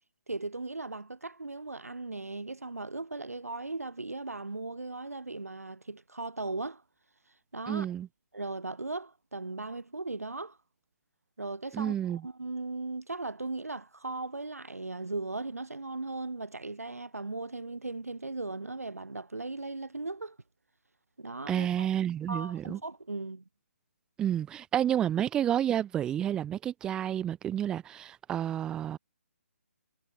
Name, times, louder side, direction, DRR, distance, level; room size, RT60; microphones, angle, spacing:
voice 1, 0.3-6.8 7.5-7.9 8.3-10.6 11.4-20.4 21.2-21.9 22.3-23.4, right 3 dB, 80° right, 2.7 m, -37 dB
voice 2, 7.7-8.1 11.7-12.2 21.5-22.8 24.2-29.0, right 10 dB, 10° right, 0.4 m, -30 dB
figure-of-eight pair, 140°, 8 cm